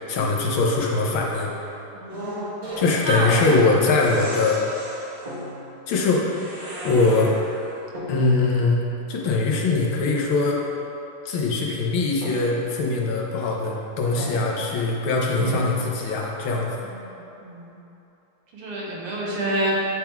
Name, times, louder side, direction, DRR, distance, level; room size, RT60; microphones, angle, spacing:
voice 1, 0.1-1.5 2.8-4.6 5.9-6.4 6.8-7.3 8.1-8.8 9.1-10.6 11.2-16.7, left 3 dB, 70° left, -2 dB, 1.6 m, -22 dB
voice 2, 1.9-2.4 3.0-3.4 16.8-17.7 18.5-19.8, right 1 dB, 90° right, -5 dB, 2.2 m, -28 dB
sound 1, 2.1-3.7 4.0-5.5 6.3-7.7, equal, 65° right, 2.5 m, -35 dB
sound 2, 5.3-5.9 7.9-8.5 10.5-10.6 12.2-13.0 14.2-14.9 15.4-16.3, equal, 25° right, 1.2 m, -36 dB
9.6 x 3.7 x 4.5 m, 3.0 s
omnidirectional pair, 2.4 m